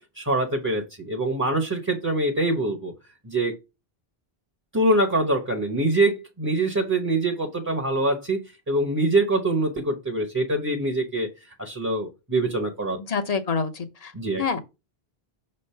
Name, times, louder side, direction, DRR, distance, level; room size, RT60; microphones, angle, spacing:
voice 1, 0.0-2.9 3.2-3.5 4.7-11.3 11.6-13.0 14.1-14.4, right 2 dB, 20° right, 0.9 m, -24 dB
voice 2, 13.0-14.1 14.4-14.6, left 5 dB, 40° left, 0.9 m, -27 dB
6.1 x 3.3 x 5.6 m
omnidirectional pair, 1.0 m